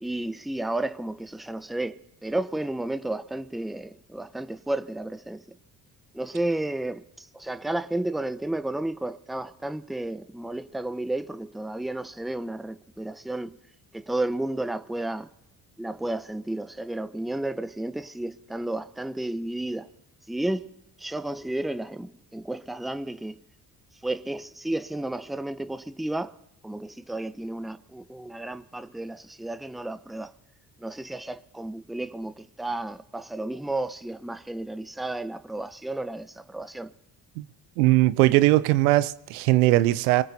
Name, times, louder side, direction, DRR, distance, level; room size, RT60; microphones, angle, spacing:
voice 1, 0.0-5.4 6.1-13.6 13.9-15.3 15.8-19.9 20.3-20.7 21.0-23.4 24.0-26.3 26.6-30.3 30.8-36.9, right 1 dB, ahead, 0.6 m, -32 dB
voice 2, 37.8-40.2, right 17 dB, 85° right, 0.6 m, -20 dB
26.0 x 19.0 x 2.8 m
hypercardioid pair, 50°, 44 cm